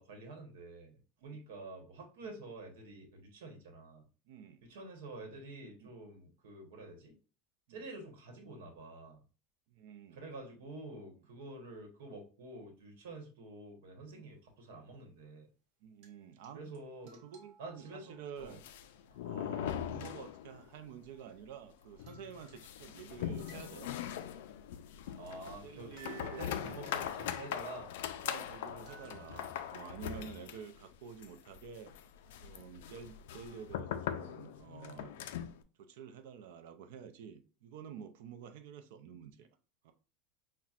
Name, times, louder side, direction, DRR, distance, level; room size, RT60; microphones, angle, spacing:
voice 1, 0.0-4.0 4.7-7.1 7.7-9.2 10.1-15.5 16.5-17.2 17.6-18.6 19.1-19.3 25.2-27.9, right 2 dB, 85° right, 1.1 m, -48 dB
voice 2, 4.3-4.6 5.8-5.9 7.7-7.9 9.7-10.2 14.1-14.3 15.8-16.7 17.2-18.6 19.2-23.9 25.6-27.1 28.2-31.9 32.4-35.1 35.8-39.5 39.8-39.9, right 7 dB, 65° right, 0.5 m, -50 dB
sound 1, 14.1-14.4 16.0-16.5 16.7-16.8 17.0-18.3 21.8-21.9 22.1-23.1 23.4-24.2 24.5-24.6 25.3-25.4 26.0-28.0 28.3-28.4 28.9-30.0, right 8 dB, 45° right, 1.0 m, -60 dB
sound 2, 18.4-20.8 21.0-21.1 21.4-21.5 22.0-35.6, left 10 dB, 75° left, 0.3 m, -41 dB
5.7 x 2.2 x 2.4 m
supercardioid pair, 170°, 0 cm